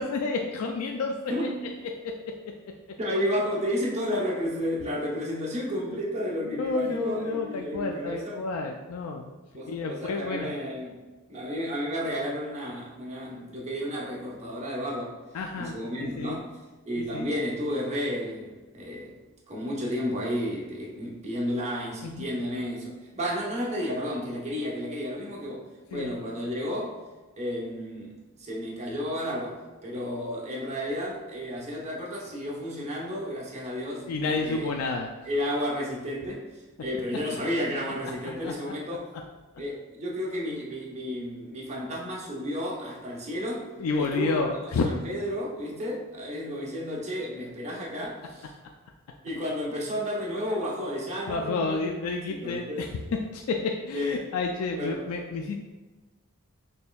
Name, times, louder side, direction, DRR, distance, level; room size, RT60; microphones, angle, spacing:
voice 1, 0.0-1.2 5.8-5.9 6.5-9.3 9.7-10.6 15.3-15.7 16.0-16.4 17.1-17.3 22.0-22.3 25.9-26.1 34.1-35.1 38.2-38.5 43.8-44.9 51.3-53.0 53.3-55.6, left 3 dB, 85° left, 2 dB, 0.3 m, -30 dB
voice 2, 1.3-1.6 3.0-8.4 9.5-11.0 11.3-15.2 15.6-16.6 16.9-19.1 19.5-27.0 27.4-28.1 28.4-34.7 35.2-39.1 39.6-43.7 43.9-48.5 49.2-51.9 52.3-52.9 53.9-54.2 54.8-55.1, equal, 30° right, -4 dB, 0.8 m, -32 dB
4.3 x 3.2 x 2.3 m, 1.2 s
head